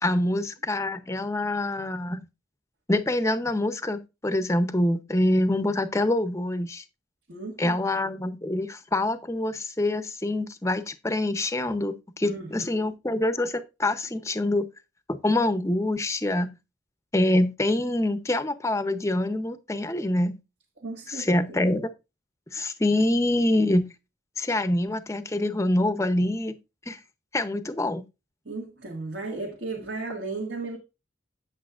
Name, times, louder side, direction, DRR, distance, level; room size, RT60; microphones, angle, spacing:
voice 1, 0.0-2.2 2.9-6.8 7.6-14.7 15.1-16.5 17.1-20.4 21.1-21.9 22.5-23.9 24.4-26.5 26.9-27.0 27.3-28.1, left 1 dB, 15° left, 0.6 m, -25 dB
voice 2, 7.3-7.8 12.2-12.9 20.8-21.6 28.4-30.8, right 3 dB, 65° right, 1.7 m, -35 dB
8.4 x 8.1 x 2.4 m
head